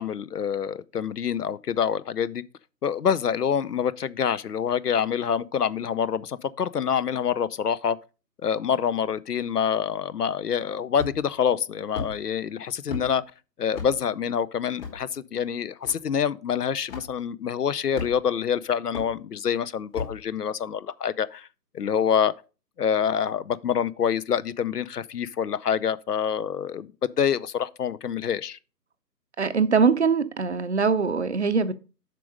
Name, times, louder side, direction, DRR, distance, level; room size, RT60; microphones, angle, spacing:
voice 1, 0.0-2.4 2.8-8.0 8.4-13.2 13.6-21.5 21.7-22.3 22.8-26.9 27.2-28.6, left 8 dB, 65° left, 0.6 m, -26 dB
sound 1, 11.0-11.4 11.9-12.1 12.9-13.1 13.7-13.9 14.8-15.0 15.8-15.9 16.9-17.1 17.9-18.4 18.9-19.1 19.9-20.2, left 4 dB, 35° left, 2.9 m, -34 dB
voice 2, 29.4-31.7, right 5 dB, 45° right, 0.6 m, -22 dB
7.5 x 5.2 x 5.0 m
figure-of-eight pair, 145°, 50 cm